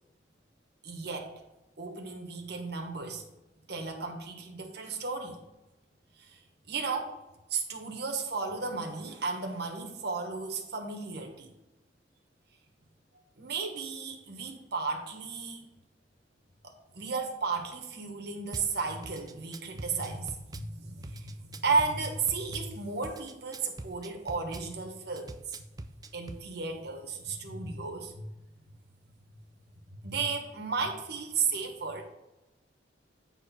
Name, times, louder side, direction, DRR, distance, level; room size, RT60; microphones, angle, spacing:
voice 1, 0.8-1.3 1.8-3.2 3.7-5.4 6.2-6.4 6.7-7.1 7.5-11.5 13.4-15.7 16.6-25.6 26.1-28.3 30.0-32.0, right 4 dB, 60° right, 3 dB, 1.2 m, -34 dB
Drum kit / Bass drum, 18.5-18.7 19.0-20.7 21.0-22.7 23.0-24.7 25.2-26.4, right 2 dB, 20° right, 0.4 m, -43 dB
8.5 x 3.3 x 5.9 m, 1.0 s
head